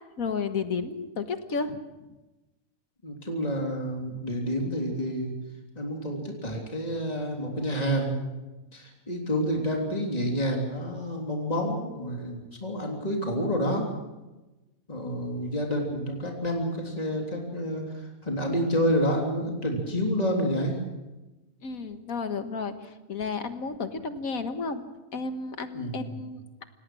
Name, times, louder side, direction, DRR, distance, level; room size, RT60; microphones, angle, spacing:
voice 1, 0.2-1.8 6.5-6.6 21.6-24.8 25.1-26.6, left 4 dB, 75° left, 9 dB, 1.9 m, -32 dB
voice 2, 3.0-5.3 5.7-8.1 8.7-13.9 14.9-20.8 25.7-26.2, equal, 25° left, 0 dB, 3.4 m, -29 dB
27.5 x 18.0 x 6.3 m, 1.1 s
omnidirectional pair, 1.5 m